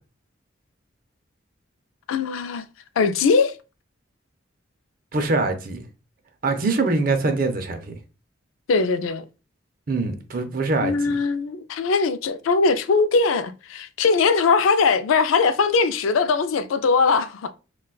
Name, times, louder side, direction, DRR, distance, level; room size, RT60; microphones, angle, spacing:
voice 1, 2.1-2.7 3.0-3.6 8.7-9.3 10.8-17.5, left 4 dB, 90° left, 0.3 m, -20 dB
voice 2, 5.1-5.8 6.4-7.9 9.9-11.2, right 3 dB, 45° right, 0.5 m, -23 dB
3.7 x 2.3 x 2.3 m
head